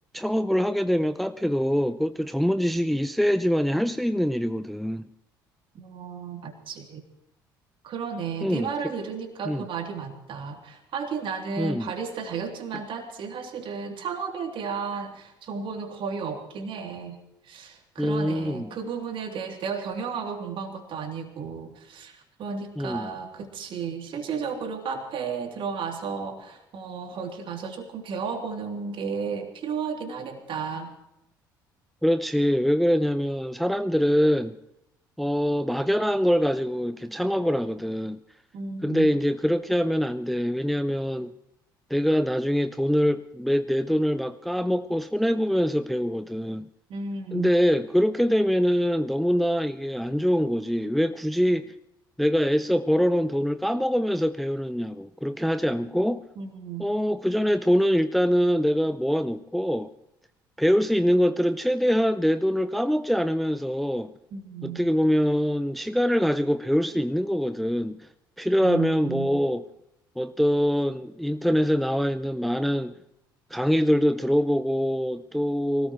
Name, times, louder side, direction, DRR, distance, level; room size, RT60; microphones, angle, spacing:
voice 1, 0.1-5.1 8.4-8.7 9.5-9.6 11.6-11.9 18.0-18.7 22.8-23.1 32.0-34.6 35.2-38.2 38.8-41.3 41.9-46.7 47.3-51.7 52.2-56.2 56.8-59.9 60.6-64.1 64.6-68.1 68.4-69.7 70.2-72.9 73.5-75.9, equal, ahead, 0.6 m, -24 dB
voice 2, 5.7-7.0 7.8-17.2 17.4-30.9 38.5-39.1 46.9-47.5 56.4-56.9 64.3-64.8 68.6-69.4, right 5 dB, 50° right, 3.2 m, -33 dB
24.5 x 18.5 x 3.2 m
figure-of-eight pair, 55°, 11 cm